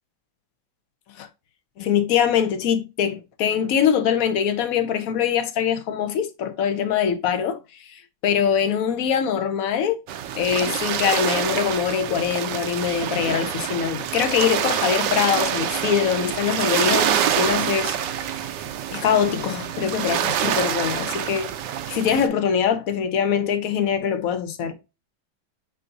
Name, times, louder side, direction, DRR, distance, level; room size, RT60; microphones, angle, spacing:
voice 1, 1.8-7.6 7.9-10.0 10.3-18.0 18.9-21.5 21.9-24.7, left 8 dB, 65° left, 0.9 m, -23 dB
sound 1, 10.1-22.3, right 10 dB, 75° right, 1.2 m, -26 dB
7.6 x 2.7 x 2.5 m
omnidirectional pair, 2.0 m